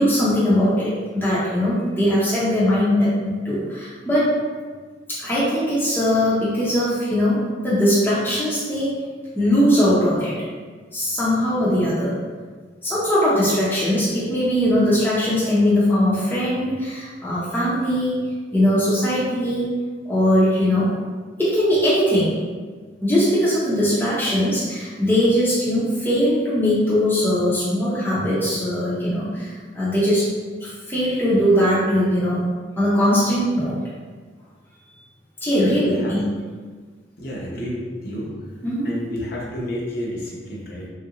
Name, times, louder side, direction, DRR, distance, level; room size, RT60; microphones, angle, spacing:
voice 1, 0.0-4.4 5.1-9.0 9.3-10.4 10.9-12.1 12.8-18.2 18.5-19.7 20.0-20.9 21.4-22.3 23.0-30.3 30.6-32.5 32.8-33.8 35.4-36.3 38.6-38.9, equal, 10° left, -10 dB, 0.6 m, -20 dB
voice 2, 35.6-36.2 37.2-38.4 38.8-40.9, equal, 55° left, -4 dB, 0.7 m, -30 dB
3.2 x 2.5 x 2.9 m, 1.5 s
head